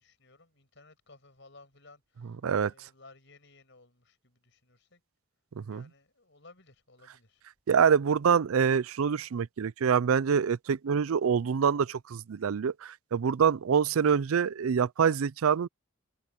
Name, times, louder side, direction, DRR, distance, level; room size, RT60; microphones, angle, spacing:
voice 1, 0.0-5.0 5.7-7.4, left 3 dB, 55° left, 6.7 m, -57 dB
voice 2, 7.7-15.7, right 7 dB, 80° right, 0.4 m, -25 dB
head